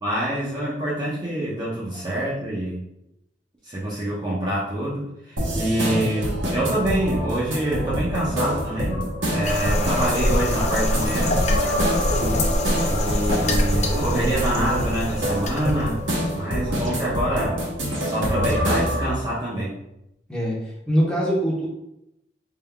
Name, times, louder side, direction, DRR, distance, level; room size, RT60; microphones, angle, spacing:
voice 1, 0.0-2.8 3.6-11.4 12.9-16.0 16.3-17.6 18.0-19.8, right 1 dB, 25° right, -7 dB, 0.7 m, -26 dB
sound 1, 5.4-19.1, equal, 80° right, 1.0 m, -26 dB
sound 2, 9.4-16.0, left 1 dB, 40° left, 0.5 m, -24 dB
voice 2, 12.0-12.5 20.3-21.7, equal, 5° left, -6 dB, 1.1 m, -25 dB
4.1 x 3.7 x 2.3 m, 0.85 s
head